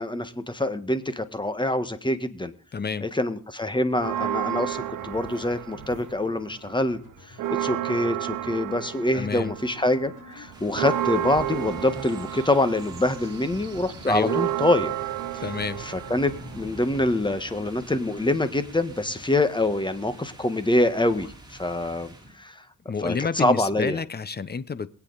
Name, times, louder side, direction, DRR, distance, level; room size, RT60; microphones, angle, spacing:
voice 1, 0.0-2.5 3.0-14.9 15.3-15.4 15.8-22.6 23.0-24.0, left 1 dB, 15° left, 11 dB, 1.5 m, -25 dB
voice 2, 2.7-3.1 9.1-9.5 14.1-14.4 15.4-15.8 22.9-24.9, left 5 dB, 30° left, 16 dB, 1.0 m, -29 dB
sound 1, 3.9-18.3 18.6-19.3 19.6-20.5 20.8-21.4, left 5 dB, 90° left, 3.4 m, -51 dB
sound 2, 4.0-6.3 6.7-17.2, right 13 dB, 90° right, 1.0 m, -32 dB
sound 3, 10.5-22.4, right 1 dB, 15° right, 3.6 m, -45 dB
23.0 x 8.5 x 4.1 m, 0.43 s
cardioid pair, 80°, 31 cm